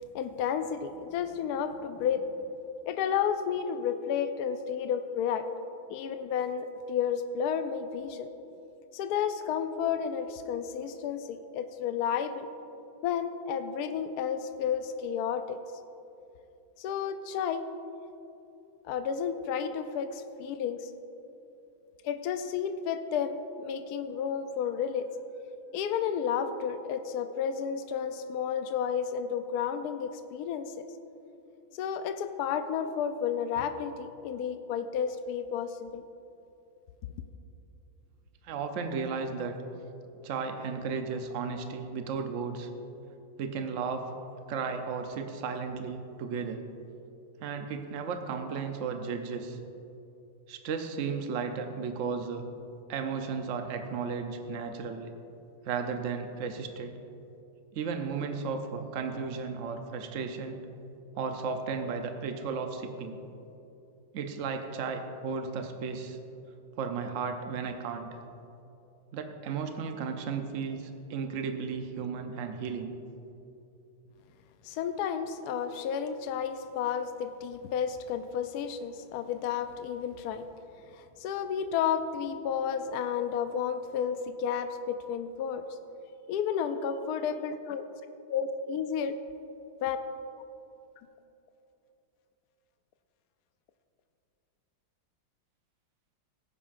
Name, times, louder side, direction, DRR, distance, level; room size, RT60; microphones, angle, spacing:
voice 1, 0.1-2.2 2.9-5.5 5.9-8.3 8.9-12.5 13.0-15.6 16.8-17.7 18.8-20.9 22.0-25.1 25.7-30.7 31.7-36.0 74.6-80.5 80.9-85.6 86.3-87.9 88.3-89.1 89.8-90.0, left 7 dB, 80° left, 8 dB, 0.9 m, -32 dB
voice 2, 38.4-39.5 40.2-42.7 43.4-44.1 44.5-46.6 47.4-49.6 50.5-52.4 52.9-55.1 55.6-56.9 57.7-60.6 61.2-63.2 64.1-66.2 66.8-68.1 69.1-72.9, right 5 dB, 85° right, 6 dB, 0.6 m, -34 dB
18.0 x 9.9 x 2.5 m, 2.9 s
omnidirectional pair, 2.2 m